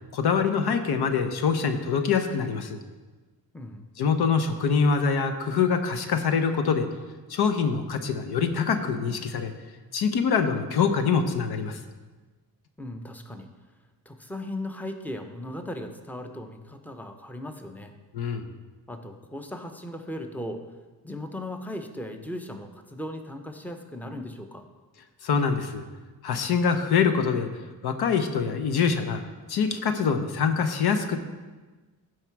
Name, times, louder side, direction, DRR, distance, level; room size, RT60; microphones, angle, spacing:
voice 1, 0.1-2.8 4.0-6.9 7.3-9.5 9.9-11.8 18.1-18.5 25.2-25.8 26.2-27.5 27.8-29.2 29.5-31.2, left 6 dB, 80° left, 8 dB, 0.8 m, -24 dB
voice 2, 3.5-3.9 12.8-13.5 14.0-17.9 18.9-20.6 21.0-24.7, left 1 dB, 5° left, 6 dB, 0.8 m, -37 dB
12.0 x 4.7 x 4.6 m, 1.3 s
cardioid pair, 80°, 38 cm